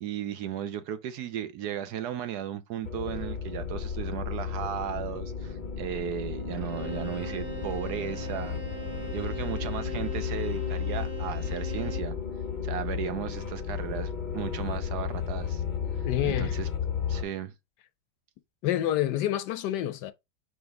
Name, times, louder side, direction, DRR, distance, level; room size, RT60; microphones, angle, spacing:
voice 1, 0.0-8.6 9.1-12.1 12.6-15.6 16.0-16.7 17.1-17.5, right 9 dB, 70° right, 1.1 m, -35 dB
sound 1, 2.8-17.2, left 7 dB, 45° left, 0.6 m, -33 dB
Bowed string instrument, 6.5-12.2, right 6 dB, 35° right, 1.2 m, -42 dB
voice 2, 16.0-16.6 18.6-20.1, left 12 dB, 75° left, 1.1 m, -28 dB
5.2 x 4.9 x 3.7 m
omnidirectional pair, 2.0 m